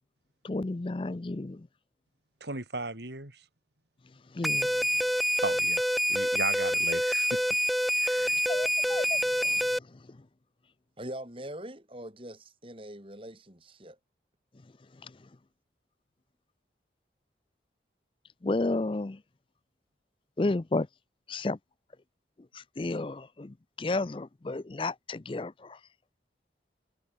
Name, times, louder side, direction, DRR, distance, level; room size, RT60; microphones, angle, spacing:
voice 1, 0.4-1.7 4.3-4.9 8.5-10.2 15.0-15.1 18.4-19.2 20.4-20.9 21.3-21.6 22.5-25.8, left 2 dB, 30° left, 0.4 m, -32 dB
voice 2, 2.4-3.4 5.4-7.4 8.0-8.4, right 2 dB, 70° right, 4.3 m, -36 dB
sound 1, 4.4-9.8, equal, ahead, 1.0 m, -27 dB
voice 3, 11.0-14.0, right 1 dB, 30° right, 5.4 m, -42 dB
head